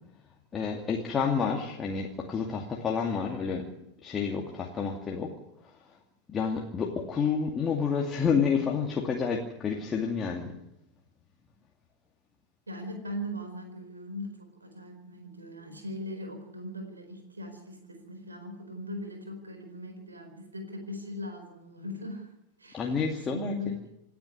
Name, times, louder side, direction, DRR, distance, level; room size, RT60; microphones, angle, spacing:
voice 1, 0.5-3.7 4.0-5.3 5.6-6.0 6.3-10.6 22.7-23.5, left 6 dB, 20° left, 0 dB, 2.5 m, -29 dB
voice 2, 12.7-22.3 22.6-23.0 23.2-23.8, left 1 dB, 80° right, 4 dB, 4.5 m, -39 dB
28.5 x 9.7 x 9.7 m, 0.86 s
figure-of-eight pair, 90°, 0 cm